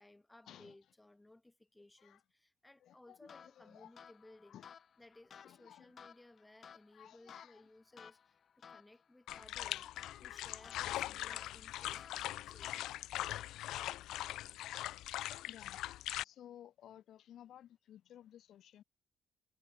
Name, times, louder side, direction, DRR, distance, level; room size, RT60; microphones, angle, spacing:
voice 1, 0.0-4.6 5.0-9.9 10.2-12.8, left 2 dB, 10° left, 7.0 m, -61 dB
voice 2, 2.8-3.9 4.4-4.8 5.4-5.9 6.9-7.7 9.5-10.9 11.6-12.1 15.5-15.8 16.2-18.8, left 11 dB, 70° left, 6.7 m, -57 dB
sound 1, 3.3-13.9, left 7 dB, 50° left, 7.5 m, -58 dB
sound 2, 9.3-16.2, left 14 dB, 90° left, 0.8 m, -41 dB
cardioid pair, 90°, 0 cm